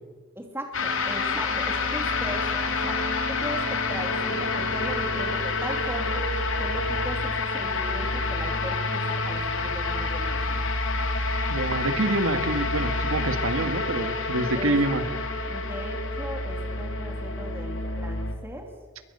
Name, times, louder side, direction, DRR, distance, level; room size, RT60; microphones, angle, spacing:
voice 1, 0.4-6.3 6.6-10.7 14.5-14.8 15.5-18.7, right 1 dB, 10° right, 2 dB, 2.8 m, -38 dB
sound 1, 0.7-18.3, left 3 dB, 75° left, 2.8 m, -28 dB
voice 2, 11.5-15.1, right 2 dB, 85° right, 9 dB, 1.9 m, -26 dB
23.0 x 21.0 x 6.8 m, 1.4 s
head